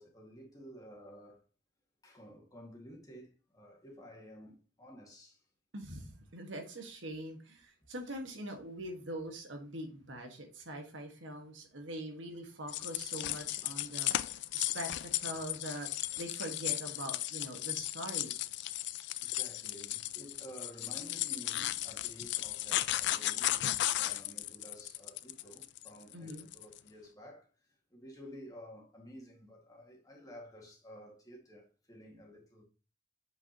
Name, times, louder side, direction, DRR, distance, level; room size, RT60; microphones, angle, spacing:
voice 1, 0.0-1.4 2.0-5.4 19.2-27.5 27.9-32.6, equal, 20° left, 1.9 m, -52 dB
voice 2, 5.7-14.1 14.5-15.9 16.2-18.3 26.1-26.5, right 1 dB, 85° right, 1.6 m, -43 dB
sound 1, 12.7-26.8, left 14 dB, 65° left, 0.4 m, -35 dB
7.8 x 5.4 x 2.9 m
head